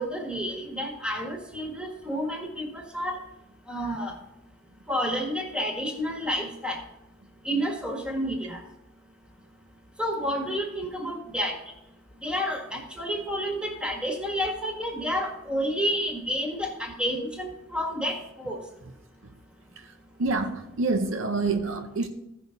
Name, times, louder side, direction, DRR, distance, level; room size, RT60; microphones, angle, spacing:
voice 1, 0.0-3.2 3.7-4.1 4.9-6.8 7.4-8.6 10.0-11.6 12.2-18.6, equal, 5° right, 1.7 m, -30 dB
voice 2, 20.2-22.1, right 3 dB, 80° right, 0.8 m, -27 dB
15.5 x 5.7 x 4.0 m
head